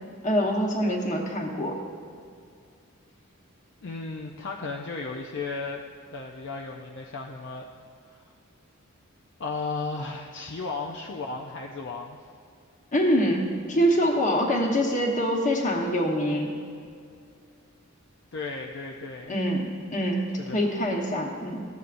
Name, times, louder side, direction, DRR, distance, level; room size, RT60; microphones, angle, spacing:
voice 1, 0.2-1.8 12.9-16.5 19.3-20.2 20.5-21.7, equal, 35° left, 1 dB, 1.1 m, -25 dB
voice 2, 3.8-5.8 6.1-7.6 8.1-8.2 9.4-12.2 18.3-19.4 20.4-20.7, left 3 dB, 55° left, 0 dB, 0.5 m, -35 dB
14.0 x 8.1 x 2.5 m, 2.3 s
head